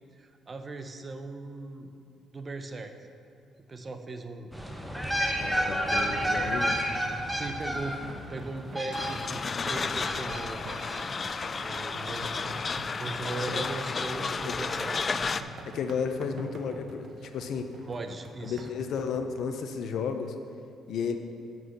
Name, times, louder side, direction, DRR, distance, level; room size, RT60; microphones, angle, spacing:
voice 1, 0.2-1.9 2.3-2.9 3.7-4.5 5.1-5.5 7.3-10.6 11.6-12.6 13.0-15.0 17.9-18.7, right 3 dB, 35° right, 7 dB, 0.7 m, -39 dB
sound 1, 4.5-9.5 10.1-11.0 11.3-11.4, equal, 5° right, 1.0 m, -30 dB
voice 2, 5.4-6.8 13.5-13.6 14.5-14.6 15.7-17.7 18.4-20.3 20.9-21.2, left 6 dB, 70° left, 7 dB, 0.7 m, -33 dB
sound 2, 5.9-19.2, right 2 dB, 55° right, 1.1 m, -45 dB
sound 3, 8.9-15.4, left 4 dB, 35° left, 0.3 m, -32 dB
8.0 x 6.2 x 5.6 m, 2.6 s
cardioid pair, 90°, 0 cm